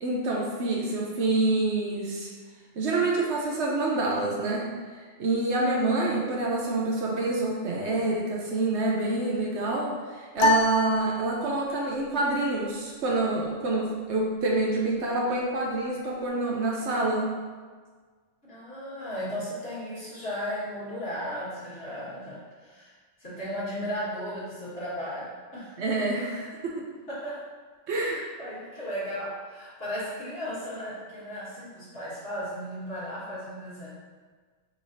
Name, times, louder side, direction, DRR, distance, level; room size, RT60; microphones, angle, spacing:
voice 1, 0.0-2.3 2.8-4.7 5.2-17.3 25.8-26.8 27.9-28.2, right 2 dB, 65° right, -2 dB, 0.9 m, -27 dB
sound 1, 10.4-11.9, left 1 dB, 80° left, 1.0 m, -25 dB
voice 2, 18.4-22.9 23.2-25.8 27.1-27.4 28.0-33.9, equal, 50° left, -10 dB, 1.9 m, -35 dB
4.7 x 4.0 x 2.7 m, 1.5 s
omnidirectional pair, 1.3 m